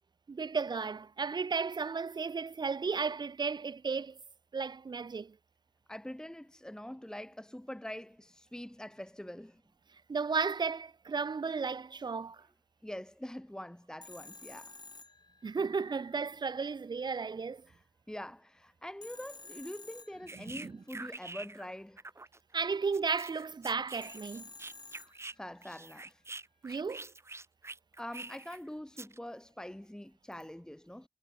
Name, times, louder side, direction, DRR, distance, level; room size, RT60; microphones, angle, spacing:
voice 1, 0.3-4.2 4.5-5.3 10.1-12.4 15.4-17.6 20.4-20.8 22.5-24.5 26.6-27.1, right 5 dB, 85° right, 0.6 m, -34 dB
voice 2, 5.9-9.6 12.8-14.7 17.7-22.0 25.4-26.2 28.0-31.1, left 1 dB, 10° left, 0.9 m, -44 dB
Telephone, 14.0-15.9 19.0-20.8 24.0-25.7, left 3 dB, 80° left, 4.8 m, -52 dB
sound 1, 20.3-21.7 22.0-25.3 25.6-28.6 29.0-29.2, right 3 dB, 40° right, 0.6 m, -46 dB
wide cardioid pair, 70°, 7 cm